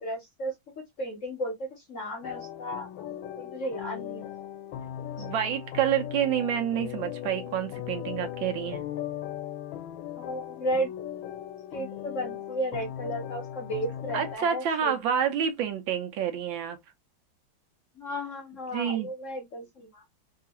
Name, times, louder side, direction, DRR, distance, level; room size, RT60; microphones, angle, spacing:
voice 1, 0.0-4.3 4.6-4.8 5.2-5.3 10.2-10.9 11.7-14.9 17.9-20.0, equal, 60° left, 0.8 m, -34 dB
sound 1, 2.2-14.4, left 11 dB, 80° left, 1.3 m, -38 dB
voice 2, 5.2-8.8 14.1-16.8 18.7-19.1, right 9 dB, 75° right, 1.5 m, -28 dB
3.5 x 2.4 x 2.8 m
omnidirectional pair, 2.2 m